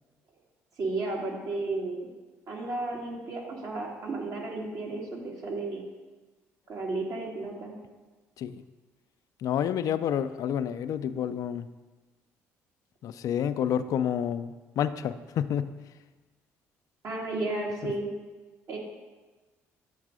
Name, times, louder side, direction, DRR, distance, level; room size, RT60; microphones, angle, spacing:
voice 1, 0.8-2.1 2.5-5.9 6.7-7.8 17.0-18.1 18.7-18.8, right 2 dB, 60° right, -1 dB, 1.7 m, -33 dB
voice 2, 9.4-11.7 13.0-15.7 17.8-17.9, left 9 dB, 65° left, 12 dB, 0.3 m, -29 dB
8.1 x 4.0 x 4.9 m, 1.2 s
supercardioid pair, 60°, 6 cm